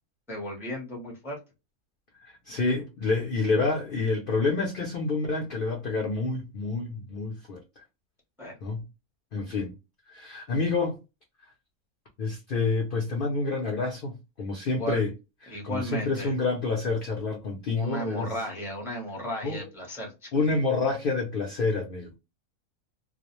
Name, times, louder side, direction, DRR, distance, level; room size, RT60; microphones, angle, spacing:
voice 1, 0.3-1.4 8.4-8.5 14.6-15.0 15.5-16.3 17.7-20.3, right 1 dB, 5° right, 0.5 m, -35 dB
voice 2, 2.5-7.8 8.6-8.8 9.3-9.7 10.1-11.0 12.2-15.1 15.4-18.3 19.4-19.6 20.3-22.2, left 3 dB, 65° left, 0.5 m, -28 dB
2.4 x 2.0 x 2.9 m
omnidirectional pair, 1.5 m